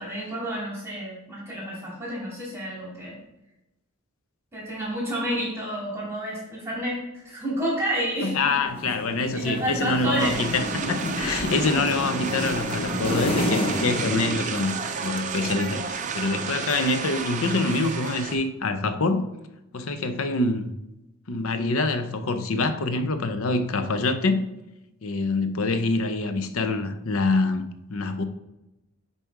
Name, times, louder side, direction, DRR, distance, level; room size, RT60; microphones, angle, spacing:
voice 1, 0.0-3.1 4.5-8.4 9.3-10.5 10.8-10.9 11.2-11.3, equal, 10° right, -5 dB, 2.4 m, -30 dB
voice 2, 8.2-19.2 19.7-20.7 21.3-24.4 25.0-27.6 27.9-28.2, left 3 dB, 70° left, 9 dB, 0.6 m, -25 dB
sound 1, 8.6-15.2, left 1 dB, 25° left, 0.7 m, -30 dB
sound 2, 10.2-18.3, right 5 dB, 35° right, 0.5 m, -32 dB
7.2 x 4.1 x 4.6 m, 0.92 s
head